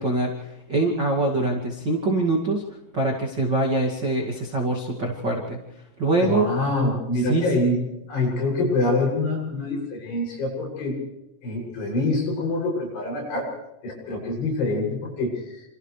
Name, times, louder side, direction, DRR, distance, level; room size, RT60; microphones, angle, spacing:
voice 1, 0.0-2.6 2.9-5.6 6.0-6.5 7.2-7.5, right 2 dB, 35° right, -2 dB, 1.7 m, -24 dB
voice 2, 6.2-7.8 8.1-11.0 11.4-13.5 13.8-15.3, left 2 dB, 55° left, -1 dB, 9.2 m, -25 dB
28.5 x 28.0 x 3.3 m, 0.93 s
omnidirectional pair, 5.7 m